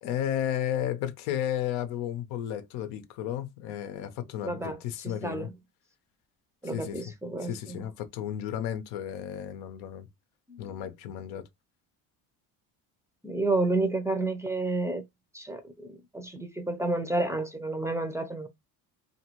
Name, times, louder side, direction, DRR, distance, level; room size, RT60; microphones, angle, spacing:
voice 1, 0.0-5.5 6.6-7.0 7.4-10.1 10.6-11.5, left 10 dB, 85° left, 0.8 m, -33 dB
voice 2, 4.4-4.8 5.2-5.5 6.6-7.8 10.5-10.6 13.2-15.0 15.3-18.5, right 2 dB, 10° right, 0.5 m, -30 dB
2.7 x 2.5 x 2.9 m
cardioid pair, 105°, 38 cm